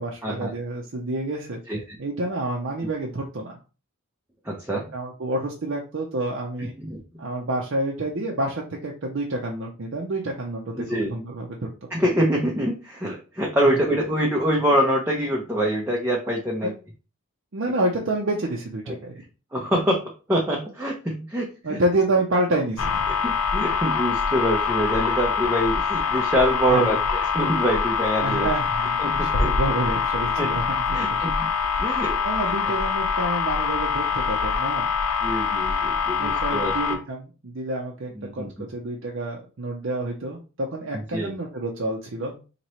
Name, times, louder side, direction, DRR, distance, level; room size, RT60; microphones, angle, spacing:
voice 1, 0.0-1.6 2.0-3.6 4.9-6.7 7.2-11.7 13.7-13.8 16.6-16.7 17.5-19.2 21.6-22.9 26.7-27.0 28.2-31.3 32.2-34.9 36.2-42.3, right 1 dB, 55° right, -1 dB, 0.6 m, -28 dB
voice 2, 4.4-4.9 6.8-7.0 10.8-11.1 11.9-16.7 19.5-21.5 21.7-21.8 23.2-28.5 29.0-29.5 30.4-30.5 30.9-31.5 31.8-32.2 35.2-36.7 38.2-38.7 40.9-41.3, equal, 10° right, -2 dB, 0.6 m, -25 dB
sound 1, 22.8-37.0, left 6 dB, 80° left, 0.6 m, -24 dB
4.2 x 2.9 x 3.0 m, 0.34 s
head